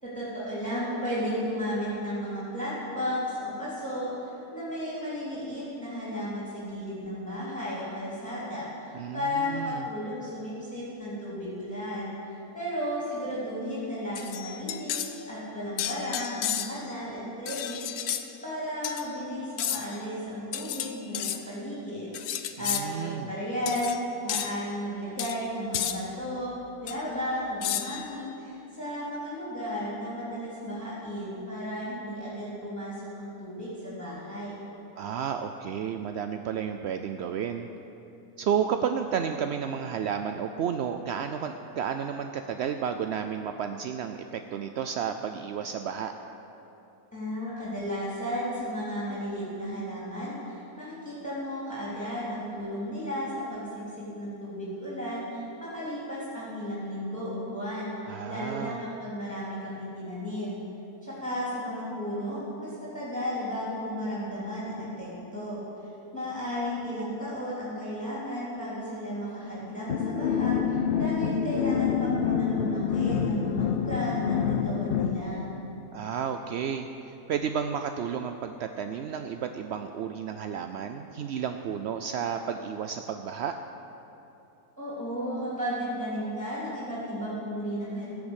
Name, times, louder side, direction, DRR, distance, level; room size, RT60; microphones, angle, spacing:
voice 1, 0.0-34.6 47.1-53.7 54.0-60.6 61.0-65.6 66.1-75.4 84.8-88.1, equal, 5° left, -8 dB, 3.4 m, -34 dB
voice 2, 8.9-9.8 22.6-23.3 35.0-37.7 38.4-46.1 58.1-58.8 75.9-83.5, right 7 dB, 70° right, 6 dB, 0.6 m, -32 dB
sound 1, 14.2-15.2 15.8-16.9 17.5-18.2 18.8-19.1 19.6-20.0 20.5-21.4 22.1-22.9 23.7-24.0 24.3-24.5 25.2-25.4 25.7-26.0 26.9-27.0 27.6-28.1, left 10 dB, 85° left, 1.2 m, -32 dB
sound 2, 69.9-75.2, left 7 dB, 65° left, 0.5 m, -27 dB
16.0 x 7.0 x 8.1 m, 2.9 s
omnidirectional pair, 1.6 m